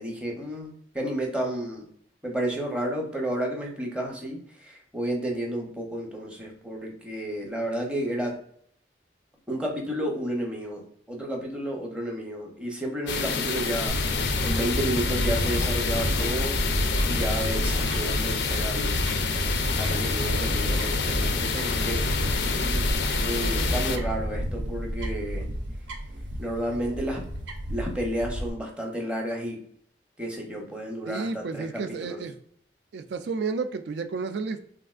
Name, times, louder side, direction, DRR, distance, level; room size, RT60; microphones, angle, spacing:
voice 1, 0.0-1.8 2.2-8.3 9.5-14.0 14.4-19.0 19.8-22.1 22.3-22.9 23.2-25.5 26.4-27.2 27.7-29.6 30.2-32.2, right 1 dB, 5° right, 0 dB, 0.6 m, -31 dB
sound 1, 13.1-24.0, left 5 dB, 65° left, 0.4 m, -28 dB
Fowl / Bird, 13.9-28.5, equal, 85° right, 0.7 m, -29 dB
voice 2, 31.1-32.3 32.9-34.6, right 4 dB, 65° right, 9 dB, 0.3 m, -31 dB
3.4 x 2.4 x 2.3 m, 0.63 s
head